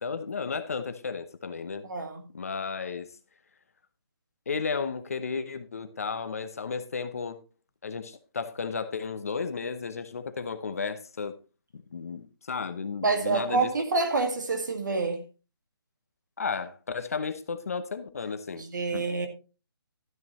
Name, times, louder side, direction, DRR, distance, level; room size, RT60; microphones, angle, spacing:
voice 1, 0.0-1.8 2.3-3.1 4.5-7.4 7.8-11.4 11.9-13.7 16.4-18.6 18.9-19.0, left 5 dB, 35° left, 0.8 m, -33 dB
voice 2, 1.8-2.2 13.0-15.2 18.5-19.3, right 3 dB, 50° right, 2.0 m, -27 dB
12.5 x 9.3 x 3.1 m
hypercardioid pair, 175°, 13 cm